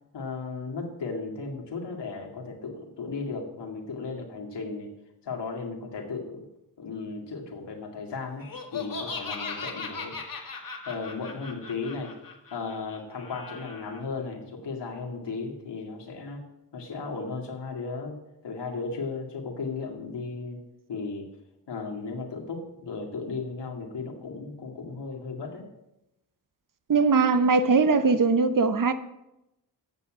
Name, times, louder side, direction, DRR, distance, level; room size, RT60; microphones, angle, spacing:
voice 1, 0.1-4.9 5.2-6.4 6.8-8.5 8.7-10.2 10.6-12.1 12.5-16.4 16.7-18.2 18.4-20.6 20.9-21.3 21.7-25.6, left 4 dB, 75° left, 2.2 m, -35 dB
Laughter, 8.4-14.0, left 4 dB, 50° left, 1.8 m, -38 dB
voice 2, 26.9-28.9, right 4 dB, 50° right, 0.8 m, -21 dB
8.1 x 7.0 x 7.4 m
cardioid pair, 65°, 42 cm